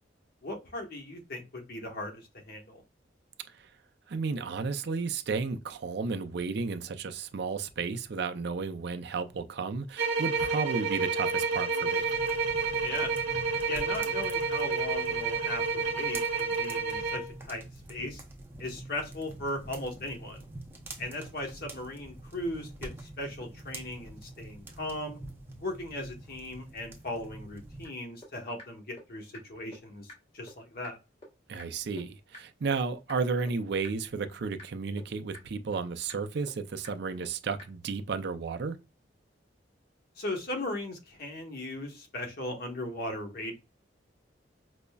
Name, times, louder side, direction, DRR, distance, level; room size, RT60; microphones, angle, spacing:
voice 1, 0.4-2.8 12.8-13.1 13.7-18.2 18.6-20.5 21.0-25.2 25.6-31.0 40.2-43.5, left 1 dB, 55° left, 1.0 m, -38 dB
voice 2, 4.1-12.1 31.5-38.8, right 4 dB, 60° right, 0.5 m, -33 dB
sound 1, 10.0-17.3, right 4 dB, 85° right, 1.0 m, -30 dB
sound 2, 12.0-27.9, right 1 dB, 10° right, 0.6 m, -46 dB
sound 3, 27.8-27.9 28.2-28.3 28.6-28.7 29.0-29.1 29.3-29.4 29.7-29.8 30.1-30.2 30.5-30.6 30.8-30.9 31.2-31.3 31.6-31.7 32.0-32.1 32.3-32.4 32.7-32.8 33.1-33.2 33.5-33.6 33.8-33.9 34.2-34.3 34.6-34.7 35.0-35.1 35.3-35.4 35.7-35.8 36.1-36.2 36.5-36.6 36.8-36.9 37.2-37.3 37.6-37.7, left 1 dB, 30° left, 1.2 m, -46 dB
5.1 x 2.1 x 2.3 m
head